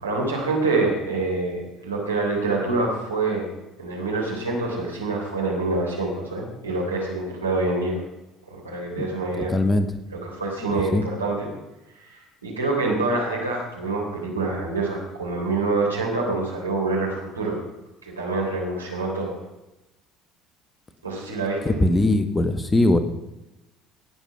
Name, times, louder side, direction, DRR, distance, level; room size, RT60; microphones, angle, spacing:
voice 1, 0.0-3.5 3.8-8.0 8.5-9.5 10.1-11.5 12.0-17.6 18.0-19.4 21.0-21.6, right 3 dB, 80° right, -2 dB, 3.4 m, -26 dB
voice 2, 9.4-9.9 10.9-11.0 21.6-23.0, left 1 dB, 15° left, 10 dB, 1.2 m, -20 dB
18.0 x 7.2 x 5.8 m, 0.97 s
figure-of-eight pair, 60°, 0 cm